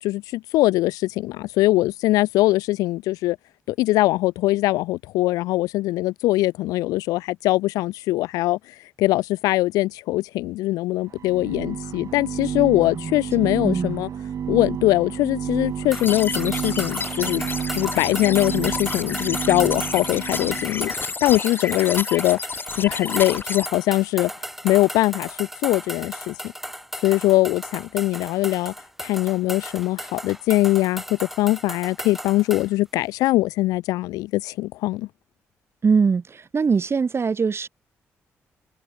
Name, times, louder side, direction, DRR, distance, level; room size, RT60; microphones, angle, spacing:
voice 1, 0.0-3.4 3.7-14.1 14.5-17.5 17.7-24.3 24.6-26.4 27.0-28.7 29.0-35.1, left 18 dB, 90° left, 0.4 m, -22 dB
sound 1, 11.1-20.8, right 8 dB, 65° right, 1.4 m, -31 dB
voice 2, 12.9-14.0 35.8-37.7, right 5 dB, 45° right, 2.4 m, -23 dB
sound 2, 15.9-23.7, left 4 dB, 35° left, 3.8 m, -31 dB
sound 3, 15.9-32.7, equal, 5° right, 6.0 m, -36 dB
supercardioid pair, 55°, 6 cm